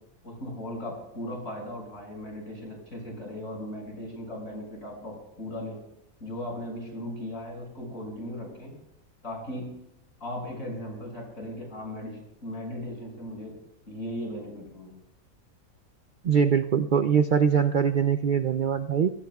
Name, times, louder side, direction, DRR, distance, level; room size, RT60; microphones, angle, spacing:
voice 1, 0.2-5.8 6.2-8.7 9.2-9.7 10.2-13.5 13.9-15.0, left 1 dB, 65° left, 0 dB, 6.7 m, -37 dB
voice 2, 16.2-19.1, right 7 dB, 65° right, 10 dB, 0.5 m, -22 dB
24.0 x 17.0 x 2.4 m, 0.82 s
omnidirectional pair, 1.5 m